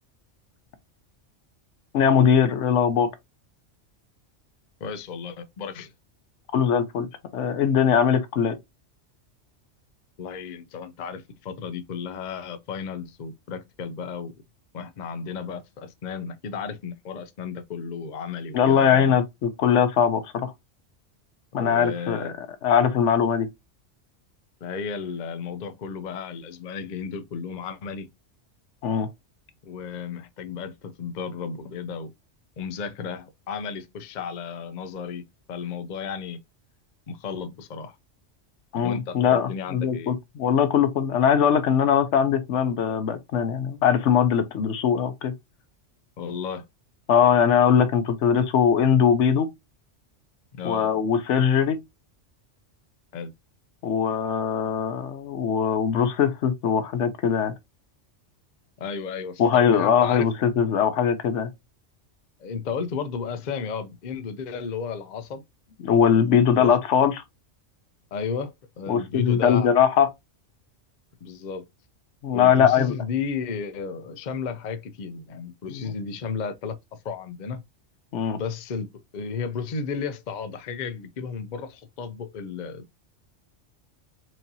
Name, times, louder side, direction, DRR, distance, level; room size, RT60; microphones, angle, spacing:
voice 1, 1.9-3.1 6.5-7.1 7.3-8.5 18.5-20.5 21.5-22.3 22.6-23.5 28.8-29.1 38.7-45.3 47.1-49.5 50.6-51.8 53.8-57.5 59.4-61.5 65.8-67.2 68.9-70.1 72.2-72.9 75.7-75.9 78.1-78.4, left 7 dB, 75° left, 1.0 m, -21 dB
voice 2, 4.8-5.9 10.2-14.3 14.7-19.1 21.6-22.4 24.6-28.1 29.6-32.1 32.6-35.2 35.5-36.4 37.1-38.0 38.8-40.1 46.2-46.6 50.5-50.9 53.1-53.3 58.8-60.3 62.4-65.4 66.1-66.7 68.1-69.7 71.2-71.6 72.3-76.8 77.0-77.6 78.4-82.8, left 6 dB, 50° left, 0.6 m, -33 dB
4.5 x 2.8 x 2.7 m
omnidirectional pair, 1.3 m